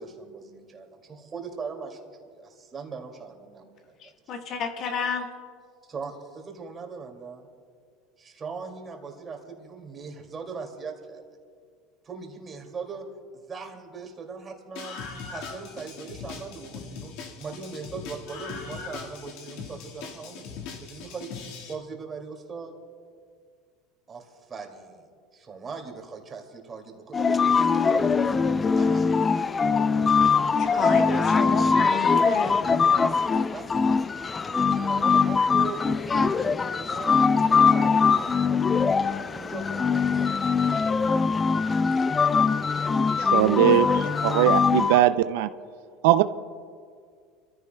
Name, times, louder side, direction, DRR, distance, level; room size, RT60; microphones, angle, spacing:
voice 1, 0.0-2.0 2.3-4.0 4.3-4.4 5.9-7.5 8.2-11.2 12.0-13.1 13.5-15.0 15.3-21.3 21.7-22.7 24.1-25.0 25.3-29.0 30.5-31.5 31.9-33.7 34.4-35.8 36.1-37.3 37.6-38.6 39.3-40.5, right 5 dB, 25° right, 2 dB, 2.4 m, -39 dB
voice 2, 4.0-5.3 30.6-32.6, left 5 dB, 45° left, 5 dB, 1.2 m, -31 dB
Screaming, 14.8-21.7, left 5 dB, 65° left, 1.8 m, -40 dB
sound 1, 27.1-45.0, left 5 dB, 20° left, 0.4 m, -22 dB
voice 3, 43.3-43.9 44.2-45.5 46.0-46.2, right 13 dB, 80° right, 12 dB, 0.4 m, -20 dB
28.5 x 14.5 x 2.3 m, 2.1 s
supercardioid pair, 120°, 0 cm